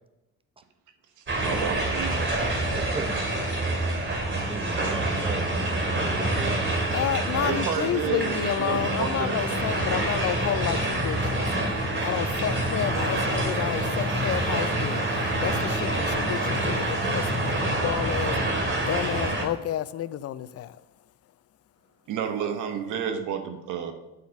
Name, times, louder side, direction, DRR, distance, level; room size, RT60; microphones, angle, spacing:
sound 1, 1.3-19.4, right 1 dB, 40° right, 2.4 m, -27 dB
voice 1, 1.3-2.1 7.4-9.4 22.1-23.9, right 7 dB, 85° right, 1.1 m, -30 dB
voice 2, 2.7-3.1 4.3-6.8, right 3 dB, 20° right, 0.6 m, -37 dB
voice 3, 6.9-11.5 12.0-15.0 15.4-18.3 18.8-20.8, left 11 dB, 55° left, 0.4 m, -30 dB
8.2 x 4.0 x 5.8 m
cardioid pair, 90°, 30 cm